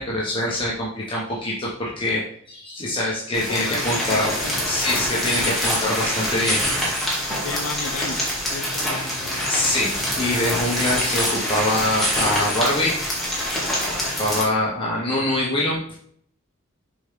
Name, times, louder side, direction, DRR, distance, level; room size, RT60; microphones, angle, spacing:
voice 1, 0.0-4.3 4.7-6.6 9.5-13.1 14.2-15.8, left 1 dB, 25° left, -5 dB, 1.2 m, -24 dB
voice 2, 3.3-4.6 5.4-5.5 7.4-9.7, left 4 dB, 85° left, 8 dB, 0.7 m, -35 dB
sound 1, 3.3-14.4, equal, ahead, 1.8 m, -25 dB
7.0 x 4.4 x 3.8 m, 0.63 s
head